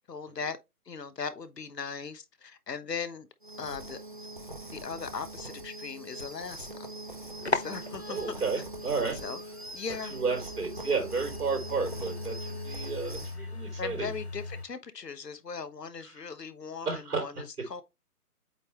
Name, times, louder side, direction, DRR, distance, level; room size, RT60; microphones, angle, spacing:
voice 1, 0.1-0.6 0.8-3.3 3.6-4.0 4.7-6.9 7.5-8.2 8.5-8.6 9.1-9.4 9.7-10.1 13.8-17.8, left 5 dB, 85° left, 1.3 m, -39 dB
sound 1, 3.4-13.4, right 1 dB, 30° right, 0.8 m, -42 dB
sound 2, 7.1-14.7, left 3 dB, 45° left, 0.5 m, -39 dB
voice 2, 8.1-9.2 10.1-14.1 16.9-17.2, right 4 dB, 70° right, 3.9 m, -32 dB
8.2 x 3.6 x 3.2 m
hypercardioid pair, 180°, 47 cm